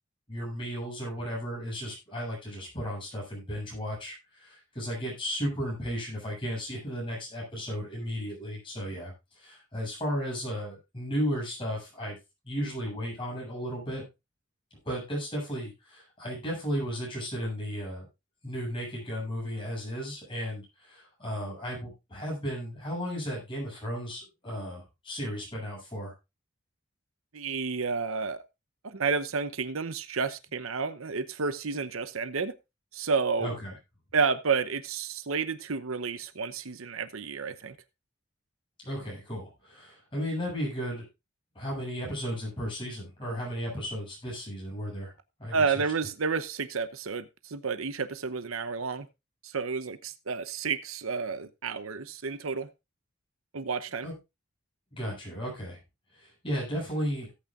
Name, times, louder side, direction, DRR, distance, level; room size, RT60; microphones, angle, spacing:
voice 1, 0.3-12.2 12.4-14.0 14.8-18.1 18.4-26.1 33.4-33.7 38.8-41.1 41.5-45.1 45.4-45.8 54.0-54.1 54.9-55.8 56.1-57.3, equal, 25° left, 7.9 m, -34 dB
voice 2, 27.3-28.4 28.8-32.5 32.9-33.5 34.1-37.8 45.5-49.1 49.4-52.7 53.5-54.1, right 5 dB, 85° right, 0.9 m, -30 dB
17.5 x 8.8 x 2.5 m
head